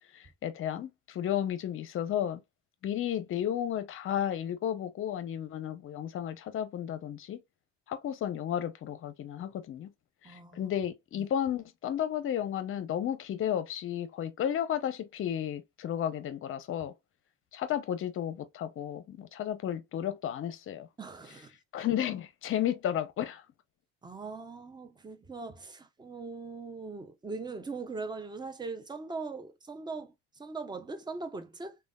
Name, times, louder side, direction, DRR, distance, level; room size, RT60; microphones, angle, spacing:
voice 1, 0.1-2.4 2.8-7.4 7.9-9.9 10.2-16.9 17.5-20.9 21.7-23.4, left 10 dB, 45° left, 0.7 m, -33 dB
voice 2, 10.2-10.7 11.2-11.3 21.0-21.5 24.0-31.8, right 4 dB, 15° right, 0.6 m, -40 dB
3.2 x 2.2 x 2.3 m
supercardioid pair, 95°, 30 cm